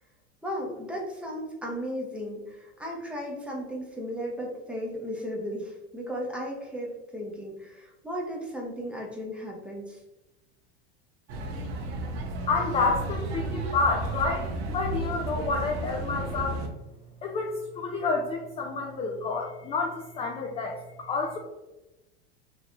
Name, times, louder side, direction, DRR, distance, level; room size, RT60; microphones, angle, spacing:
voice 1, 0.4-10.0, equal, 5° right, -2 dB, 0.7 m, -35 dB
sound 1, 11.3-16.7, right 2 dB, 70° right, 0.8 m, -33 dB
voice 2, 12.5-16.6 17.2-21.4, left 3 dB, 20° left, 1 dB, 0.3 m, -29 dB
3.2 x 3.1 x 2.5 m, 1.0 s
supercardioid pair, 110°, 32 cm